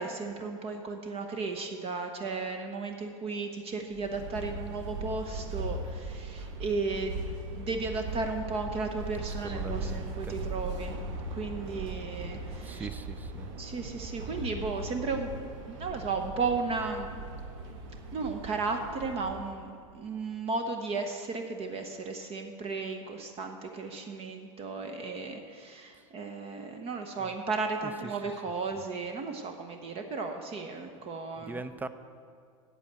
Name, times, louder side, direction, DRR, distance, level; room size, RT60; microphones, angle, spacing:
voice 1, 0.0-7.2 7.5-11.0 11.3-12.9 13.6-17.2 18.1-19.7 19.9-31.6, right 4 dB, 35° right, 5 dB, 0.9 m, -34 dB
sound 1, 3.9-19.6, right 2 dB, 65° right, 1.2 m, -39 dB
voice 2, 9.4-10.4 12.6-13.5 13.8-14.4 31.4-31.9, right 3 dB, 10° right, 12 dB, 0.5 m, -41 dB
8.2 x 8.0 x 7.5 m, 2.2 s
hypercardioid pair, 100°, 17 cm